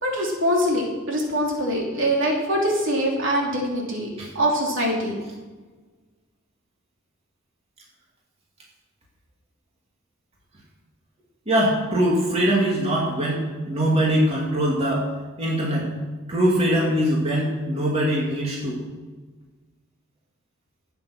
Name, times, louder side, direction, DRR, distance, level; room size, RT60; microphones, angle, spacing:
voice 1, 0.0-4.1 4.3-5.1, equal, 65° right, -2 dB, 3.1 m, -23 dB
voice 2, 11.5-15.1 15.4-15.9 16.3-18.8, equal, 30° right, -3 dB, 2.4 m, -22 dB
13.0 x 9.0 x 6.1 m, 1.3 s
head